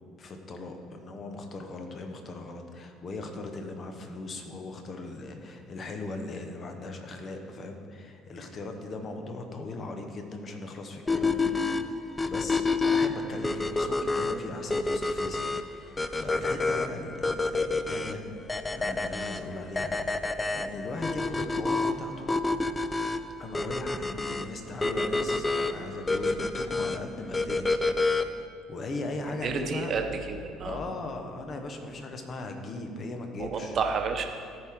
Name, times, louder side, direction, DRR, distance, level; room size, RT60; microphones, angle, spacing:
voice 1, 0.2-11.8 12.2-18.3 18.7-22.3 23.4-28.2 28.7-29.9 30.6-33.8, left 2 dB, 40° left, 5 dB, 1.0 m, -38 dB
sound 1, 11.1-28.5, left 3 dB, 15° left, 0.4 m, -29 dB
voice 2, 29.3-30.8 33.4-34.3, right 5 dB, 45° right, 5 dB, 0.8 m, -30 dB
14.0 x 4.9 x 3.7 m, 2.3 s
figure-of-eight pair, 55°, 0 cm